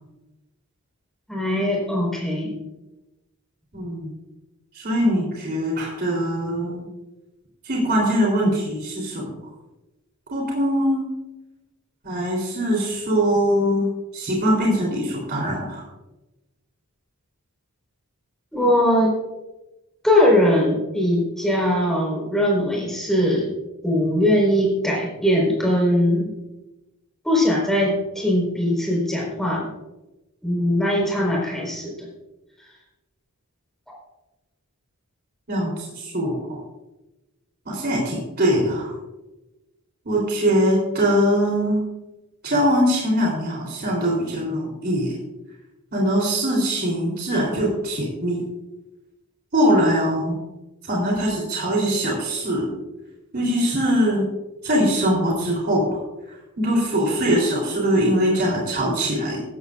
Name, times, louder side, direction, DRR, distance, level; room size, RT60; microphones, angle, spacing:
voice 1, 1.3-2.6 18.5-19.1 20.0-23.5 23.8-26.3 27.2-29.7 30.4-32.1, left 1 dB, ahead, -3 dB, 4.4 m, -20 dB
voice 2, 3.7-4.1 4.7-6.9 7.6-9.3 10.3-11.0 12.0-13.9 14.1-15.8 35.5-36.6 37.6-38.9 40.0-41.8 42.4-45.1 45.9-48.4 49.5-50.4 50.8-52.7 53.3-54.2 54.6-56.0 56.3-59.4, equal, 45° right, -2 dB, 3.4 m, -22 dB
15.5 x 13.5 x 2.5 m, 1.0 s
head